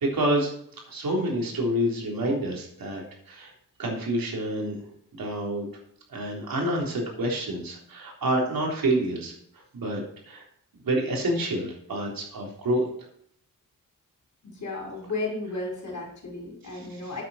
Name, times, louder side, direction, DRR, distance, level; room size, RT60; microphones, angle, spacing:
voice 1, 0.0-0.5 0.9-3.5 3.8-4.8 5.1-5.7 6.1-9.3 9.7-10.0 10.3-10.4 10.8-12.8 16.7-17.1, right 1 dB, 85° right, -1 dB, 3.6 m, -28 dB
voice 2, 14.5-17.2, left 2 dB, 60° left, -1 dB, 5.0 m, -33 dB
9.0 x 8.3 x 4.3 m, 0.66 s
wide cardioid pair, 100°, 34 cm